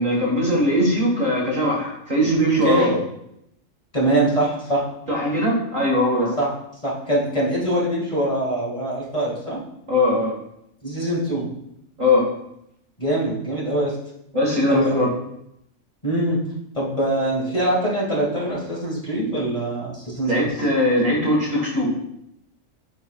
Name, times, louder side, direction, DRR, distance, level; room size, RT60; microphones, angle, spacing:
voice 1, 0.0-2.9 5.1-6.3 9.9-10.3 12.0-12.2 14.3-15.1 20.3-21.9, left 1 dB, 35° right, -3 dB, 1.6 m, -20 dB
voice 2, 2.6-3.0 3.9-4.8 6.4-6.5 6.8-9.6 10.8-11.5 13.0-14.0 14.7-15.1 16.0-16.4 16.7-20.5, right 1 dB, 25° left, -5 dB, 2.3 m, -23 dB
11.5 x 5.5 x 2.4 m, 0.78 s
omnidirectional pair, 1.4 m